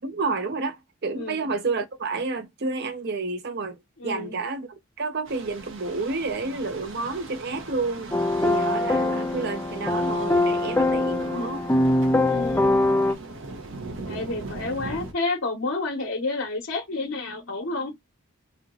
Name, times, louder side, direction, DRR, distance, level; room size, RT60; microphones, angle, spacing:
voice 1, 0.0-8.1 8.4-11.7, right 3 dB, 55° right, 0.7 m, -30 dB
voice 2, 1.1-1.5 4.0-4.3 11.3-11.6 12.3-12.7 14.0-18.0, left 3 dB, 80° left, 1.1 m, -30 dB
sound 1, 5.3-15.1, right 3 dB, 70° right, 0.9 m, -40 dB
sound 2, 8.1-13.1, left 2 dB, 10° left, 0.4 m, -23 dB
3.2 x 2.9 x 3.7 m
head